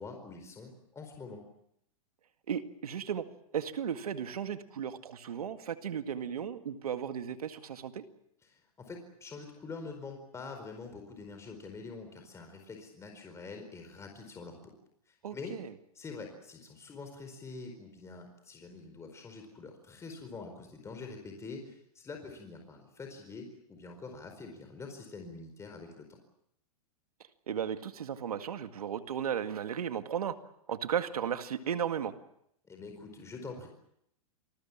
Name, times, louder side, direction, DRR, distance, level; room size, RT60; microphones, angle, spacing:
voice 1, 0.0-1.4 8.5-8.6 8.9-14.6 15.1-15.5 15.9-26.2 32.6-33.7, left 4 dB, 15° left, 4 dB, 4.6 m, -45 dB
voice 2, 2.5-8.0 15.2-15.7 27.5-30.4 30.7-32.1, right 8 dB, 85° right, 9 dB, 2.0 m, -35 dB
28.0 x 20.5 x 7.4 m, 0.75 s
hypercardioid pair, 125°, 19 cm